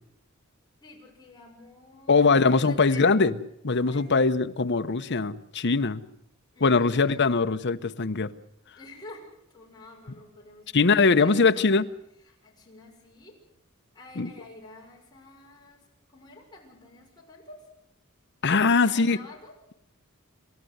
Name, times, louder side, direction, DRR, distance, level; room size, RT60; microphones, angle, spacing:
voice 1, 0.8-2.2 2.6-3.1 3.7-4.3 6.5-7.3 8.7-9.2 9.5-10.7 11.2-11.8 12.3-13.4 13.9-15.8 16.1-17.6 18.5-19.6, left 2 dB, 20° left, -2 dB, 6.4 m, -49 dB
voice 2, 2.1-3.3 3.6-6.0 6.6-8.3 10.7-11.9 14.2-14.3 18.4-19.2, left 4 dB, 55° left, 9 dB, 0.9 m, -21 dB
28.5 x 13.5 x 8.0 m, 0.77 s
head